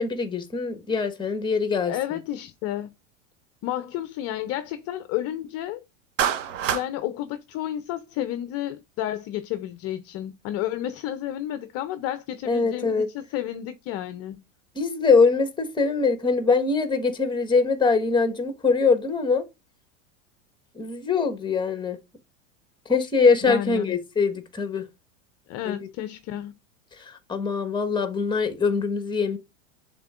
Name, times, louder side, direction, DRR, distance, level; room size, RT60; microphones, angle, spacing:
voice 1, 0.0-1.9 12.5-13.1 14.7-19.4 20.7-22.0 22.8-24.8 25.6-25.9 27.0-29.4, left 4 dB, 10° left, 1.3 m, -23 dB
voice 2, 1.9-2.9 3.6-5.8 6.7-14.4 23.5-24.0 25.5-26.5, left 12 dB, 40° left, 0.6 m, -31 dB
Clapping, 6.2-6.9, right 9 dB, 75° right, 1.1 m, -25 dB
10.5 x 3.7 x 2.5 m
hypercardioid pair, 105°, 38 cm